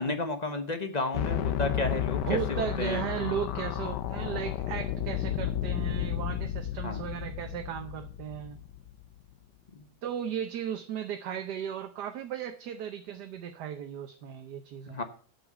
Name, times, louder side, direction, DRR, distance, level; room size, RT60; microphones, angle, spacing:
voice 1, 0.0-3.0 6.8-7.0 14.9-15.0, left 2 dB, 30° left, 7 dB, 1.0 m, -32 dB
sound 1, 1.1-9.2, left 11 dB, 80° left, 1.3 m, -32 dB
voice 2, 2.2-8.6 10.0-15.0, right 9 dB, 75° right, 6 dB, 1.4 m, -36 dB
8.0 x 6.2 x 7.9 m, 0.44 s
omnidirectional pair, 1.8 m